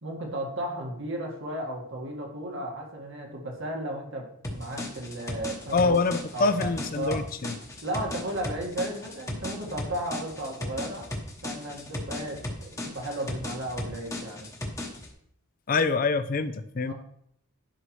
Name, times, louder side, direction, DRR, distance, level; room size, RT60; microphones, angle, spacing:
voice 1, 0.0-6.0 6.3-7.2 7.8-11.1 11.4-14.5 16.9-17.0, right 1 dB, 60° right, 1 dB, 1.8 m, -34 dB
sound 1, 4.4-15.1, left 1 dB, 15° left, 1.1 m, -36 dB
voice 2, 5.7-7.6 15.7-16.9, left 4 dB, 40° left, 12 dB, 0.5 m, -25 dB
11.0 x 5.6 x 3.2 m, 0.70 s
head